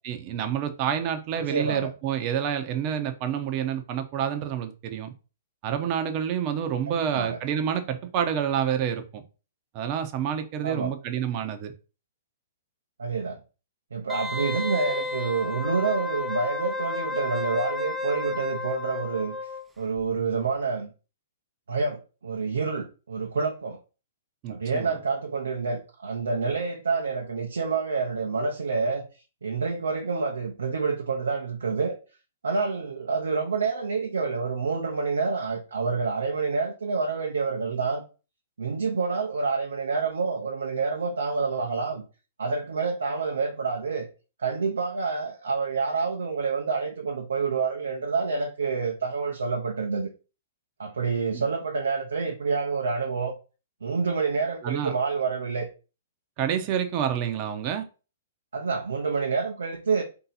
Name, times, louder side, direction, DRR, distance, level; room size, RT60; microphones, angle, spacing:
voice 1, 0.0-5.1 5.6-9.2 9.7-11.7 24.4-25.0 51.3-51.5 54.6-55.0 56.4-57.8, right 9 dB, 40° right, 0.8 m, -28 dB
voice 2, 1.5-1.9 6.9-7.4 10.6-10.9 13.0-13.4 13.9-19.3 19.8-20.9 21.7-23.8 24.5-29.1 29.4-32.0 32.4-38.0 38.6-42.0 42.4-44.1 44.4-50.1 50.8-53.3 53.8-55.7 58.5-60.0, right 4 dB, 75° right, 0.7 m, -28 dB
Wind instrument woodwind instrument, 14.1-19.6 20.0-20.1, left 3 dB, 5° right, 0.6 m, -32 dB
3.7 x 2.8 x 4.1 m
figure-of-eight pair, 115°, 0 cm